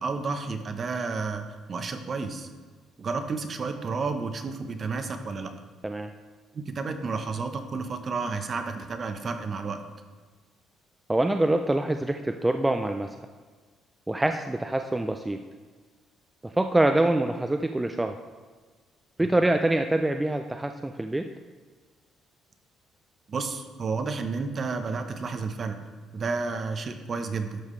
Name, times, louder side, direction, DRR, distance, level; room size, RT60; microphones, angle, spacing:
voice 1, 0.0-2.5 3.0-5.5 6.5-9.8 23.3-25.8 26.1-27.6, right 4 dB, 40° right, 7 dB, 0.8 m, -31 dB
voice 2, 11.1-13.1 14.1-15.4 16.4-18.2 19.2-21.3, right 1 dB, 10° right, 6 dB, 0.4 m, -25 dB
11.5 x 7.3 x 3.2 m, 1.4 s
cardioid pair, 115°, 0 cm